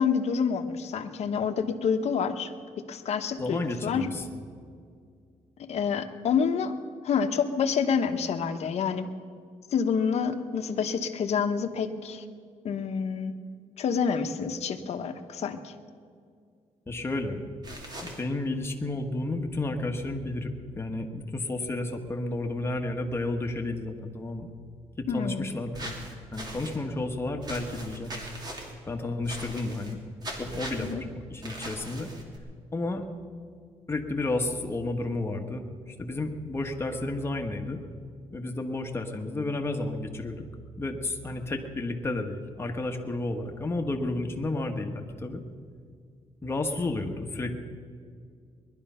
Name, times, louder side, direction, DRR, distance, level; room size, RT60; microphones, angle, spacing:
voice 1, 0.0-2.5 2.9-4.1 5.6-6.7 7.0-9.1 9.7-12.2 12.6-13.3 13.8-15.7 25.1-25.5 30.8-31.0, left 6 dB, 65° left, 7 dB, 1.1 m, -28 dB
voice 2, 3.4-4.2 16.9-17.4 18.0-24.5 25.0-25.9 26.3-28.1 28.9-30.0 30.4-32.1 32.7-33.0 33.9-37.8 38.3-40.4 40.8-45.4 46.4-47.5, left 2 dB, 20° left, 3 dB, 1.4 m, -32 dB
sound 1, 17.6-18.2 25.7-26.8 27.4-28.7 29.2-29.9 30.2-30.9 31.4-32.4, right 1 dB, 35° right, 2.7 m, -40 dB
20.0 x 12.0 x 5.7 m, 2.2 s
cardioid pair, 135°, 12 cm